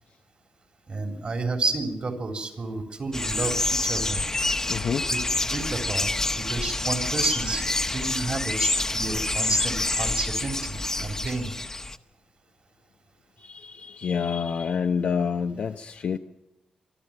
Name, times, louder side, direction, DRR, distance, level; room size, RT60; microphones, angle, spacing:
voice 1, 0.9-4.2 5.0-11.5, right 3 dB, 45° right, 5 dB, 3.6 m, -31 dB
sound 1, 3.1-12.0, left 2 dB, 20° left, 1.1 m, -27 dB
voice 2, 4.6-5.0 13.4-16.2, left 6 dB, 70° left, 4 dB, 0.8 m, -28 dB
26.0 x 11.0 x 8.9 m, 0.90 s
cardioid pair, 80°, 3 cm